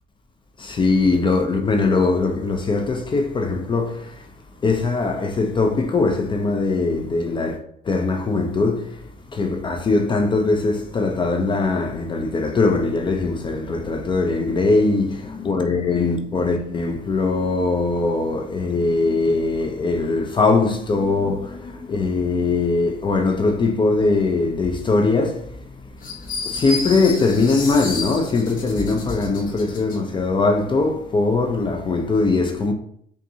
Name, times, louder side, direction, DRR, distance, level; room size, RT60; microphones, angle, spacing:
voice 1, 0.6-4.2 4.6-7.6 7.8-9.0 9.3-25.6 26.4-32.7, left 3 dB, 30° left, 0.5 m, -21 dB
sound 1, 26.0-30.0, left 3 dB, 55° left, 1.1 m, -31 dB
5.2 x 2.6 x 2.7 m
cardioid pair, 110°, 17 cm